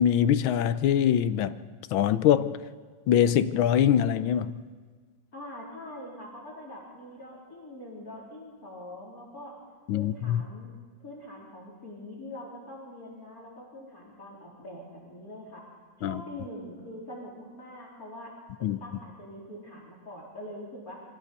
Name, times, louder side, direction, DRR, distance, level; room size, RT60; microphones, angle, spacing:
voice 1, 0.0-1.6 1.9-2.6 3.1-4.6 9.9-10.4 16.0-16.2 18.6-18.8, left 10 dB, 85° left, 13 dB, 1.5 m, -23 dB
voice 2, 5.3-9.6 9.9-10.7 11.0-15.6 16.0-18.3 18.6-21.0, left 1 dB, 45° left, -4 dB, 4.3 m, -43 dB
24.5 x 15.5 x 6.8 m, 1.5 s
omnidirectional pair, 2.1 m